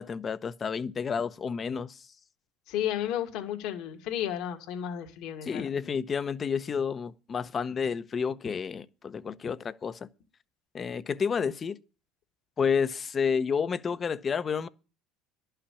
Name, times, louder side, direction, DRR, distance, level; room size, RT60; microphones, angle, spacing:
voice 1, 0.0-2.0 5.4-10.0 10.7-11.8 12.6-14.7, left 6 dB, 30° left, 0.8 m, -30 dB
voice 2, 2.7-5.7, left 10 dB, 65° left, 2.1 m, -33 dB
11.5 x 5.7 x 8.4 m
supercardioid pair, 115°, 0 cm